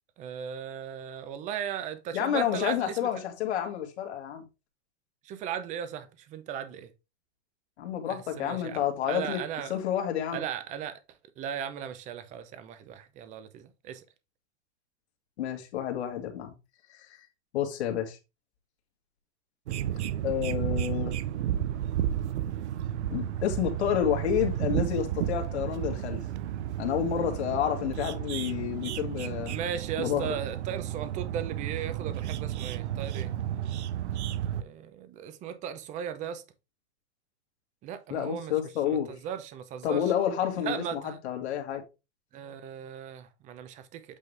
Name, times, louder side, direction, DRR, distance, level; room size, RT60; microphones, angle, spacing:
voice 1, 0.2-3.0 5.2-6.9 8.1-8.8 9.1-9.7 10.3-11.0 11.4-14.0 29.5-33.3 34.5-36.4 37.8-38.5 38.8-40.1 40.6-41.2 42.3-44.0, right 8 dB, 20° right, 0.7 m, -37 dB
voice 2, 2.1-4.4 7.8-9.4 9.7-10.4 15.4-16.5 17.5-18.2 20.2-21.2 23.1-26.2 26.8-29.6 30.0-30.3 38.1-39.1 39.8-41.8, left 9 dB, 70° left, 2.1 m, -29 dB
sound 1, 19.7-34.6, right 11 dB, 75° right, 0.7 m, -32 dB
8.3 x 3.9 x 3.4 m
supercardioid pair, 155°, 34 cm